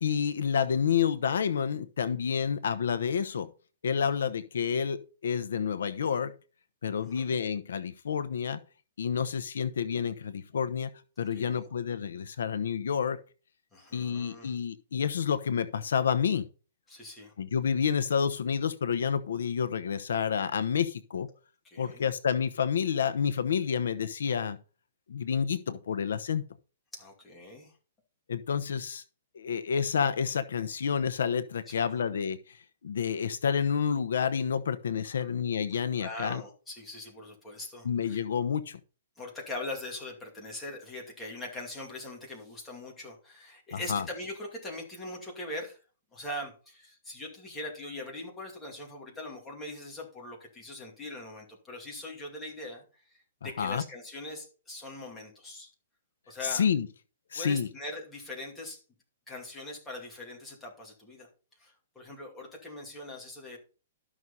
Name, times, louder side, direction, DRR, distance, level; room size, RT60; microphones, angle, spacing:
voice 1, 0.0-3.5 3.8-6.3 6.8-8.6 9.0-10.9 11.2-13.2 13.9-16.5 17.4-21.3 21.8-24.6 25.1-26.4 28.3-29.0 29.3-32.6 32.8-36.4 37.8-38.8 43.7-44.1 53.4-53.8 56.4-56.9 57.3-57.7, left 7 dB, 85° left, 0.9 m, -29 dB
voice 2, 7.0-7.3 11.3-11.7 13.7-14.5 16.9-17.3 21.6-22.0 26.9-27.7 31.7-31.9 35.0-35.3 35.7-38.2 39.2-45.8 46.1-52.8 53.1-55.7 56.3-56.6 57.3-58.8 59.3-61.3 61.6-63.6, left 2 dB, 5° left, 2.5 m, -41 dB
12.5 x 6.2 x 4.1 m
hypercardioid pair, 180°, 0 cm